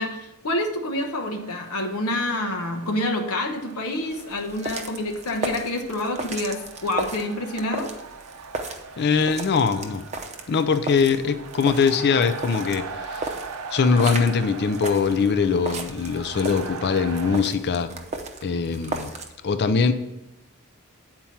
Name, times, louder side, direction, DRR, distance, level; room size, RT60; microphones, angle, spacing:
voice 1, 0.0-7.9, left 1 dB, 80° left, 4 dB, 0.9 m, -27 dB
sound 1, 0.9-17.4, right 4 dB, 85° right, 0.7 m, -40 dB
sound 2, 4.1-19.3, right 2 dB, 30° right, 0.7 m, -36 dB
voice 2, 9.0-10.1 10.5-13.4 13.7-17.9 18.4-19.1 19.4-19.9, left 5 dB, 50° left, 10 dB, 0.4 m, -22 dB
8.8 x 4.4 x 5.6 m, 0.94 s
head